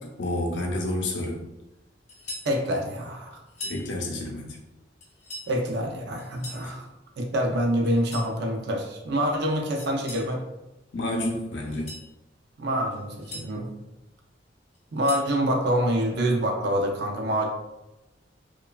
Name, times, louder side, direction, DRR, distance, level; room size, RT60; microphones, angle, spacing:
voice 1, 0.2-1.4 3.6-4.6 6.6-6.7 10.9-11.9, left 1 dB, 70° left, 0 dB, 0.5 m, -29 dB
sound 1, 2.1-2.5 3.5-3.9 5.0-5.5 6.2-6.7 7.8-8.3 9.8-10.3 11.6-12.1 12.9-13.5 14.7-15.3, left 2 dB, 40° left, 0.8 m, -40 dB
voice 2, 2.4-3.4 5.5-6.8 7.2-10.4 12.6-13.7 14.9-17.5, equal, 60° right, 2 dB, 0.5 m, -26 dB
3.0 x 2.2 x 2.3 m, 0.99 s
head